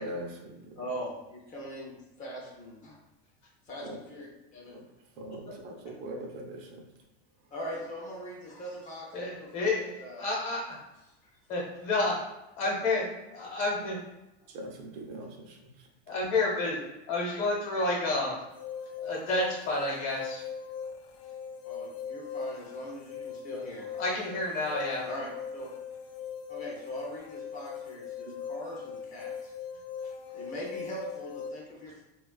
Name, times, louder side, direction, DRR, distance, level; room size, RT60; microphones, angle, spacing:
voice 1, 0.0-0.8 3.8-4.0 4.7-4.8 5.2-6.8 14.5-15.9 28.3-28.4, right 1 dB, 65° right, 2 dB, 0.5 m, -41 dB
voice 2, 0.8-3.0 3.7-4.8 5.3-5.5 7.5-9.7 10.0-10.3 11.0-11.3 17.8-18.2 21.6-24.0 25.0-25.7 26.5-29.5 30.3-32.0, equal, 25° left, -3 dB, 0.5 m, -41 dB
voice 3, 9.1-9.9 10.2-10.8 11.5-12.1 12.6-13.0 13.3-14.0 16.1-16.8 17.1-18.3 19.0-20.4 24.0-25.0, left 2 dB, 50° left, -3 dB, 0.9 m, -29 dB
sound 1, 18.5-31.5, left 7 dB, 80° left, 0.5 m, -40 dB
2.4 x 2.3 x 2.2 m, 0.95 s
supercardioid pair, 155°, 32 cm